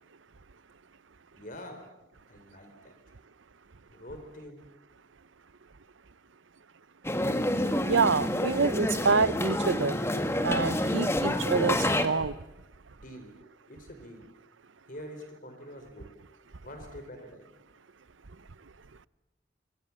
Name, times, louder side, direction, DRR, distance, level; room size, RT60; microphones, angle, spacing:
voice 1, 1.3-1.8 2.3-2.9 3.9-4.6 13.0-13.4 13.7-14.3 14.9-16.1 16.6-17.5, equal, 45° left, 4.4 m, -45 dB
sound 1, 7.0-12.1, left 1 dB, 15° left, 1.7 m, -28 dB
voice 2, 7.8-9.9 10.4-12.3, right 4 dB, 85° right, 0.8 m, -27 dB
25.5 x 25.0 x 7.4 m
head